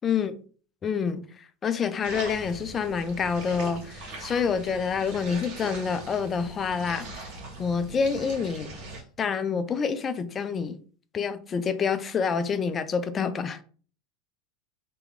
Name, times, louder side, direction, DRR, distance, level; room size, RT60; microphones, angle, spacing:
voice 1, 0.8-7.3 7.6-8.7 9.2-10.8 11.1-13.6, left 6 dB, 30° left, 0.3 m, -27 dB
sound 1, 2.0-9.0, right 2 dB, 60° right, 1.0 m, -41 dB
2.3 x 2.2 x 3.2 m
hypercardioid pair, 105°, 0 cm